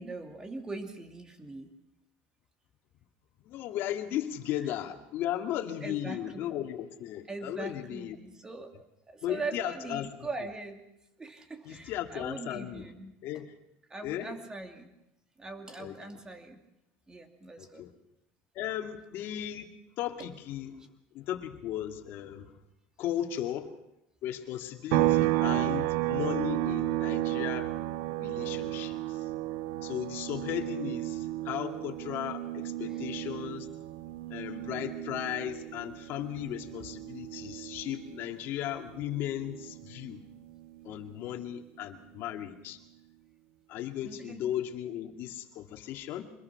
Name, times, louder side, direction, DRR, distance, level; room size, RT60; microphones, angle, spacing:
voice 1, 0.0-1.7 5.8-6.7 7.3-8.7 9.1-10.8 11.2-13.1 13.9-14.9 15.4-16.6 17.1-17.8 20.2-20.3 20.7-20.9 32.9-33.0 44.0-44.4, right 3 dB, 15° right, 5 dB, 2.5 m, -41 dB
voice 2, 3.4-8.2 9.2-10.1 11.7-12.9 13.2-13.5 14.0-14.3 15.8-16.0 17.6-17.9 18.5-19.7 20.0-20.8 21.1-22.5 23.0-23.7 24.2-27.7 28.2-29.2 29.8-33.7 34.3-40.2 40.8-42.8 43.7-46.3, left 11 dB, 60° left, 4 dB, 2.3 m, -36 dB
sound 1, 24.9-38.5 38.8-41.0, right 16 dB, 85° right, 0.8 m, -33 dB
24.5 x 21.5 x 5.9 m, 0.88 s
cardioid pair, 140°, 4 cm